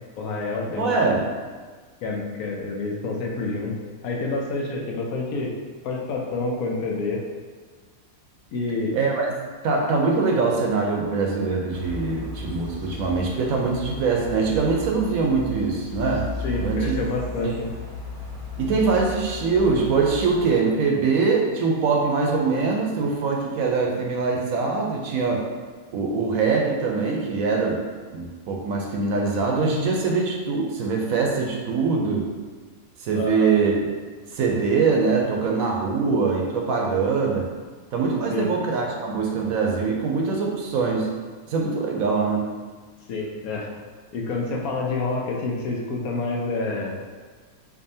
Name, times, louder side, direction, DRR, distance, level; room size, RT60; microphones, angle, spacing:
voice 1, 0.2-1.1 2.0-3.7 4.0-5.5 5.8-7.2 8.5-9.0 12.1-12.2 16.4-17.7 33.1-33.5 38.3-38.5 43.1-43.7 44.1-47.0, left 3 dB, 75° left, -1 dB, 1.1 m, -28 dB
voice 2, 0.8-1.2 8.9-9.3 9.6-16.2 16.5-17.0 17.4-17.5 18.6-25.5 25.9-27.8 28.1-32.3 33.0-33.7 34.3-37.5 37.9-41.1 41.5-42.5, right 4 dB, 70° right, 0 dB, 0.9 m, -23 dB
sound 1, 11.7-20.4, left 2 dB, 30° right, 0.7 m, -35 dB
4.7 x 2.6 x 2.7 m, 1.5 s
omnidirectional pair, 1.6 m